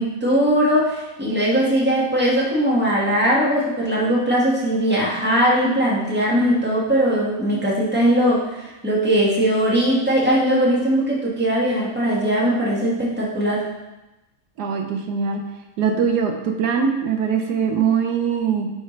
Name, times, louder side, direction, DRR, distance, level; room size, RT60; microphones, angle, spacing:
voice 1, 0.0-13.7, equal, 5° right, -6 dB, 1.6 m, -20 dB
voice 2, 14.6-15.4 15.8-18.7, right 6 dB, 85° right, 4 dB, 1.3 m, -22 dB
9.8 x 4.8 x 3.2 m, 1.0 s
omnidirectional pair, 1.7 m